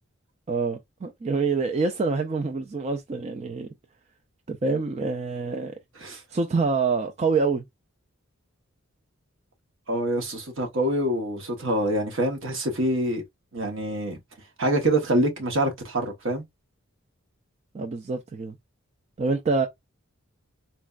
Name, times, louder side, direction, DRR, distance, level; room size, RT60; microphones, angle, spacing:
voice 1, 0.5-3.7 4.5-5.7 6.3-7.7 17.7-18.6 19.2-19.7, right 4 dB, 30° right, 0.3 m, -26 dB
voice 2, 9.9-13.2 13.5-14.2 14.6-16.4, right 1 dB, 60° right, 1.0 m, -25 dB
4.2 x 2.1 x 2.3 m
head